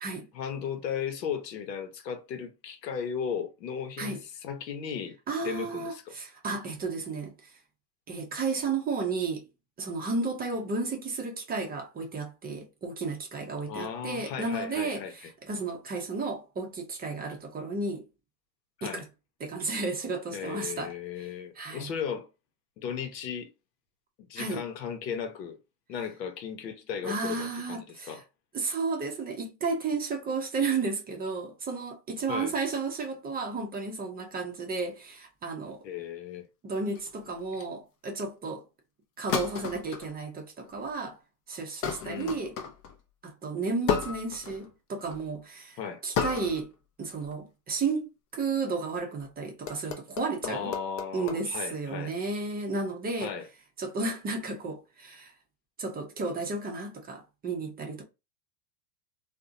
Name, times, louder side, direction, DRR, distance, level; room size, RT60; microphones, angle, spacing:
voice 1, 0.3-5.2 5.4-6.1 13.7-15.1 18.8-19.0 20.3-22.3 22.8-23.5 24.2-25.6 25.9-28.2 32.3-32.5 35.8-36.5 42.0-42.4 45.8-46.0 50.4-52.1 53.2-53.5, left 7 dB, 85° left, 0.8 m, -36 dB
voice 2, 5.3-7.5 8.1-9.4 9.8-18.1 18.8-19.0 19.4-20.9 21.6-21.9 24.4-24.6 27.0-28.2 28.5-35.8 36.6-38.6 39.2-41.2 41.5-42.6 43.2-46.7 47.0-50.7 51.1-53.3 53.8-55.3 55.8-58.0, right 4 dB, 20° right, 0.5 m, -33 dB
sound 1, 36.9-37.3 39.3-40.1 40.6-41.0 41.8-43.0 43.9-44.7 45.0-45.3 46.1-46.7 47.1-47.3 49.0-49.2 49.7-51.4, left 7 dB, 30° left, 0.4 m, -33 dB
2.5 x 2.1 x 2.5 m
hypercardioid pair, 100°, 49 cm